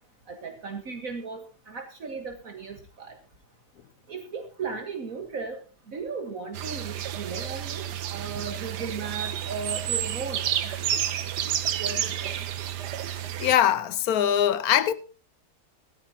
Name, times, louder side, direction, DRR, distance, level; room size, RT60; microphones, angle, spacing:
voice 1, 0.3-3.2 4.1-5.6 5.9-10.8 11.8-12.3, right 4 dB, 55° right, 1.8 m, -36 dB
sound 1, 6.5-13.5, right 10 dB, 90° right, 1.5 m, -30 dB
voice 2, 13.4-14.9, left 10 dB, 65° left, 1.3 m, -22 dB
17.0 x 13.5 x 2.8 m
omnidirectional pair, 1.7 m